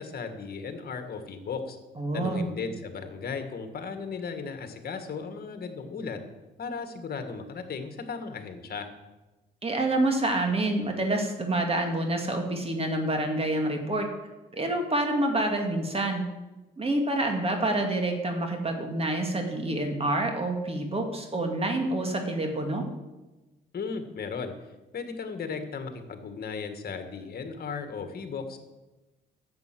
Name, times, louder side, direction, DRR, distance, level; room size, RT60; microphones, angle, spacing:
voice 1, 0.0-1.8 2.1-6.2 6.6-8.9 23.7-24.5 24.9-28.6, left 5 dB, 50° left, 7 dB, 1.8 m, -36 dB
voice 2, 2.0-2.4 9.6-14.1 14.5-16.3 16.8-22.8, right 1 dB, 30° right, 3 dB, 2.3 m, -27 dB
10.5 x 7.8 x 7.7 m, 1.1 s
cardioid pair, 90°, 20 cm